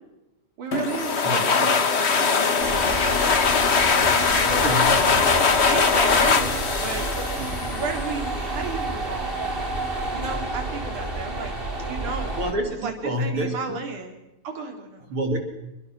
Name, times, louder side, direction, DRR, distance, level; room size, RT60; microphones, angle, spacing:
voice 1, 0.6-3.5 3.8-7.3 7.7-9.5 10.1-12.3 12.8-14.1 14.4-15.1, right 4 dB, 85° right, 4 dB, 4.9 m, -33 dB
sound 1, 0.7-8.2, left 5 dB, 55° left, 0.7 m, -21 dB
voice 2, 1.2-1.6 4.5-4.9 12.3-13.8 15.1-15.4, equal, 45° right, 5 dB, 3.2 m, -27 dB
sound 2, 2.3-6.2, left 7 dB, 30° left, 6.9 m, -37 dB
sound 3, 2.6-12.5, right 2 dB, 15° right, 3.9 m, -30 dB
29.5 x 24.5 x 6.1 m, 0.95 s
omnidirectional pair, 3.4 m